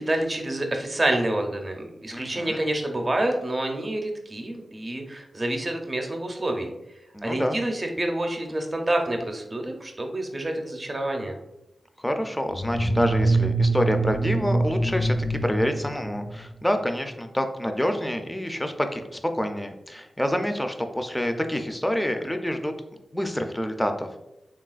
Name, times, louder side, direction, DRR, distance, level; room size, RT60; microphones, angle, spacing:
voice 1, 0.0-6.7 7.2-11.4, right 1 dB, 40° right, 3 dB, 0.6 m, -28 dB
voice 2, 2.1-2.6 7.1-7.6 12.0-22.7 23.1-24.2, equal, 10° left, 6 dB, 0.4 m, -27 dB
sound 1, 12.5-16.6, right 2 dB, 70° left, 1.0 m, -25 dB
3.3 x 2.3 x 2.4 m, 0.90 s
cardioid pair, 45°, 0 cm